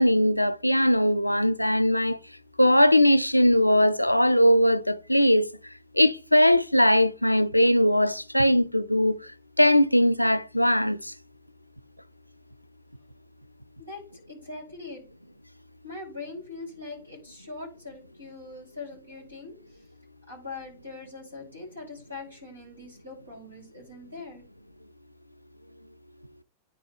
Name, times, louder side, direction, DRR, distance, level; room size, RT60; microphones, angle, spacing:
voice 1, 0.0-2.2 2.6-5.5 5.9-9.3 9.6-11.1, equal, 90° left, 0.4 m, -20 dB
voice 2, 13.8-15.0 15.8-19.9 20.3-24.4, left 3 dB, 85° right, 4.2 m, -42 dB
9.8 x 4.3 x 3.7 m
figure-of-eight pair, 90°, 0 cm